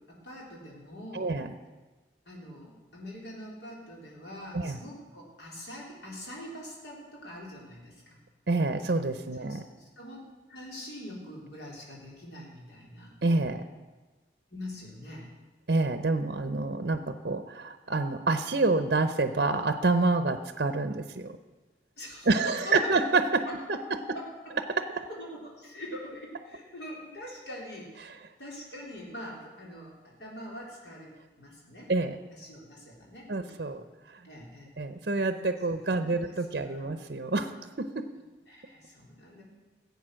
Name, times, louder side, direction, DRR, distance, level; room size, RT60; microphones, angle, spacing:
voice 1, 0.1-1.3 2.3-8.2 9.4-10.2 10.5-13.1 14.5-15.3 22.0-22.9 23.5-23.6 24.1-24.5 25.1-27.9 28.4-31.9 32.3-33.8 34.2-34.7 36.0-36.4 36.6-37.0 38.5-39.4, equal, 75° left, -3 dB, 3.6 m, -44 dB
voice 2, 1.1-1.5 4.5-4.8 8.5-9.6 13.2-13.6 15.7-21.4 22.3-23.4 23.7-23.8 24.8-25.1 31.9-32.2 33.3-33.8 34.8-38.1, right 3 dB, 60° right, 10 dB, 0.7 m, -27 dB
15.5 x 8.2 x 6.3 m, 1.2 s
head